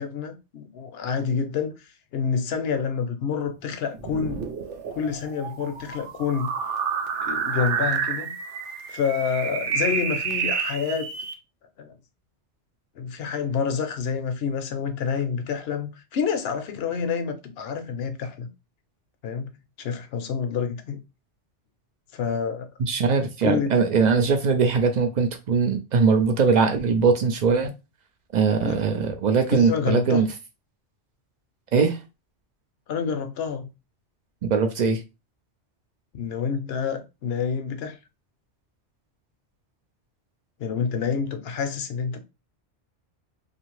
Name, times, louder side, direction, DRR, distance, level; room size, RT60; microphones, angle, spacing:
voice 1, 0.0-1.8 2.1-4.4 4.9-6.5 7.2-8.3 8.9-11.1 11.8-11.9 13.0-18.5 19.2-19.5 19.8-21.0 22.1-22.7 23.4-23.8 28.6-28.8 29.5-30.2 32.9-33.7 36.1-38.0 40.6-42.2, left 6 dB, 65° left, 0.7 m, -28 dB
sound 1, 3.9-11.3, right 6 dB, 80° right, 1.0 m, -29 dB
voice 2, 22.8-27.7 28.3-30.3 31.7-32.0 34.5-35.0, right 5 dB, 60° right, 0.4 m, -21 dB
2.7 x 2.5 x 3.0 m
omnidirectional pair, 1.2 m